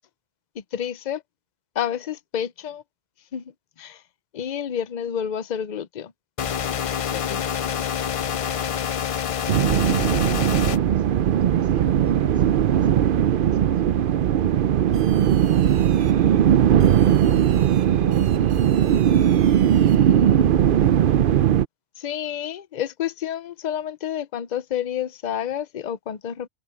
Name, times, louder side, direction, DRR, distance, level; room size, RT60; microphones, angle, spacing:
voice 1, 0.5-1.2 1.7-2.8 3.3-4.0 4.3-6.1 7.1-7.5 22.0-26.5, left 9 dB, 45° left, 0.7 m, -29 dB
sound 1, 6.4-10.8, left 8 dB, 65° left, 0.3 m, -27 dB
sound 2, 9.5-21.7, right 10 dB, 60° right, 0.7 m, -19 dB
voice 2, 9.8-16.0 17.0-19.2, right 1 dB, 15° right, 3.6 m, -43 dB
omnidirectional pair, 1.1 m